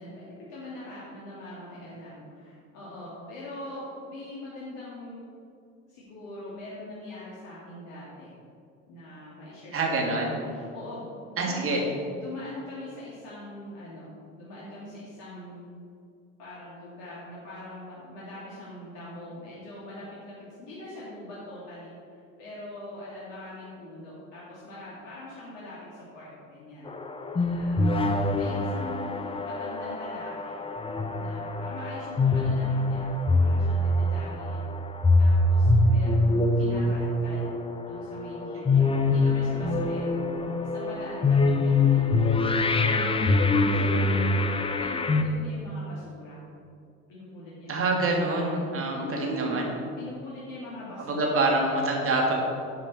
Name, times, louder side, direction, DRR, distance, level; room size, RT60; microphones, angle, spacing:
voice 1, 0.0-5.2 5.9-8.3 8.9-11.7 12.1-15.6 16.4-27.9 28.3-30.6 31.1-33.1 33.4-34.6 35.2-42.2 42.7-44.3 44.8-46.4 47.1-48.7 49.0-49.7 50.0-51.5, left 1 dB, 55° left, -7 dB, 2.7 m, -42 dB
voice 2, 9.7-10.3 11.4-11.8 47.7-49.6 51.0-52.3, right 2 dB, 35° right, -1 dB, 2.8 m, -26 dB
sound 1, 26.9-45.2, left 2 dB, 15° left, 0.8 m, -24 dB
12.5 x 8.5 x 4.4 m, 2.5 s
figure-of-eight pair, 65°, 40 cm